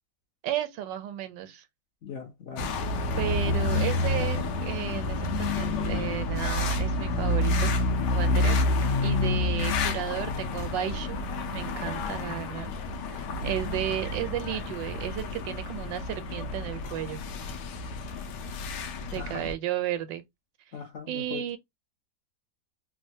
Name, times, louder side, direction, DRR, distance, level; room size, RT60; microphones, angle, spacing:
voice 1, 0.4-1.6 3.2-7.7 8.1-8.6 9.0-11.2 11.5-12.7 13.1-17.2 19.1-20.2 21.1-21.6, right 11 dB, 90° right, 1.3 m, -33 dB
voice 2, 2.0-2.7 8.3-8.6 13.4-13.8 19.2-19.5 20.7-21.4, left 7 dB, 55° left, 0.9 m, -39 dB
sound 1, 2.6-19.5, left 2 dB, 75° left, 1.2 m, -29 dB
3.2 x 2.1 x 2.6 m
omnidirectional pair, 1.9 m